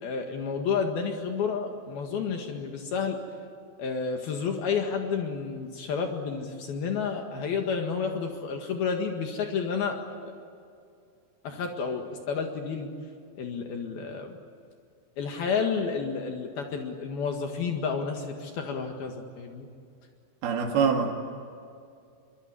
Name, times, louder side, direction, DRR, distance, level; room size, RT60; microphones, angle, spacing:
voice 1, 0.0-3.2 3.8-10.0 10.2-10.3 11.4-12.9 13.4-14.4 15.2-19.7, left 5 dB, 65° left, 3 dB, 3.5 m, -30 dB
voice 2, 20.4-21.1, right 6 dB, 65° right, 1 dB, 4.0 m, -24 dB
25.0 x 24.0 x 9.7 m, 2.4 s
omnidirectional pair, 5.0 m